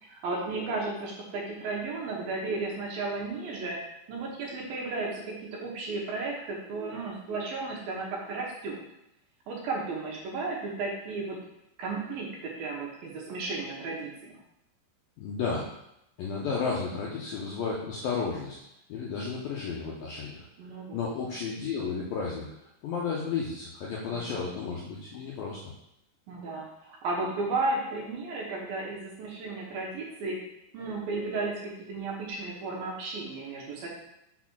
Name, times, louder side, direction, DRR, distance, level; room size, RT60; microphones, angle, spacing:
voice 1, 0.0-3.8 4.1-5.3 5.6-8.8 9.5-11.4 11.8-14.4 20.6-21.0 24.1-24.5 26.3-30.4 30.7-33.9, right 3 dB, 70° right, -2 dB, 2.4 m, -34 dB
voice 2, 15.2-15.7 16.2-18.6 18.9-20.4 20.9-22.5 22.8-25.6, left 5 dB, 80° left, -4 dB, 2.0 m, -32 dB
6.6 x 4.2 x 6.1 m, 0.82 s
omnidirectional pair, 5.4 m